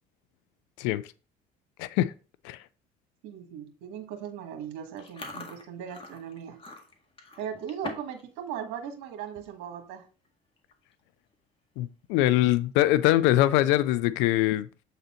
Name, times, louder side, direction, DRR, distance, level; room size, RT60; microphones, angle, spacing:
voice 1, 1.8-2.1 2.4-2.6 11.8-14.7, left 15 dB, 85° left, 0.5 m, -23 dB
voice 2, 3.2-6.6 7.4-10.1, right 8 dB, 80° right, 1.5 m, -38 dB
Chewing mastication, 5.0-8.2 8.5-8.8 9.3-9.5 10.3-10.4 10.6-10.9 11.3-11.4 12.9-13.5, left 3 dB, 30° left, 1.8 m, -43 dB
7.9 x 4.0 x 4.3 m
supercardioid pair, 90°, 19 cm